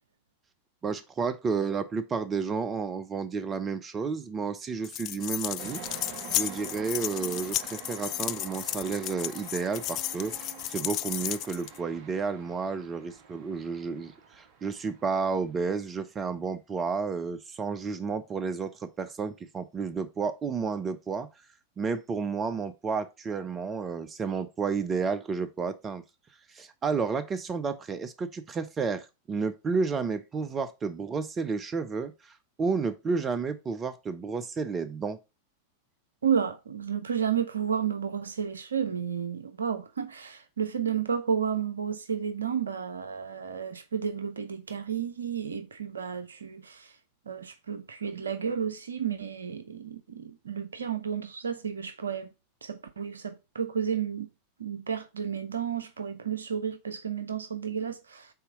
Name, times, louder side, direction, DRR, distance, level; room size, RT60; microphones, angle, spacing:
voice 1, 0.8-5.8 6.4-21.3 21.8-26.0 26.5-32.3 32.6-35.2, right 5 dB, 20° right, 0.7 m, -31 dB
sound 1, 4.8-11.8, left 14 dB, 40° left, 0.3 m, -34 dB
sound 2, 5.6-15.9, right 7 dB, 45° right, 1.1 m, -46 dB
voice 2, 36.2-46.9 47.3-52.3 52.6-54.3 54.6-58.3, right 7 dB, 70° right, 0.9 m, -32 dB
5.7 x 4.2 x 5.2 m
figure-of-eight pair, 90°, 0 cm